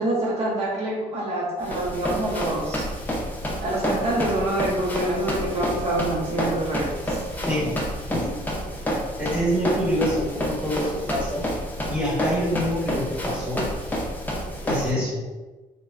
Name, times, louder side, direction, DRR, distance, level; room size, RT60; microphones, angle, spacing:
voice 1, 0.0-2.9 3.6-7.2, right 1 dB, 45° right, -4 dB, 0.7 m, -26 dB
Run, 1.6-14.9, equal, 10° left, 0.6 m, -29 dB
voice 2, 7.5-7.8 8.1-8.3 9.2-11.5 11.9-13.7 14.6-15.3, equal, 10° right, -5 dB, 1.2 m, -26 dB
3.1 x 2.1 x 3.6 m, 1.2 s
cardioid pair, 135°, 14 cm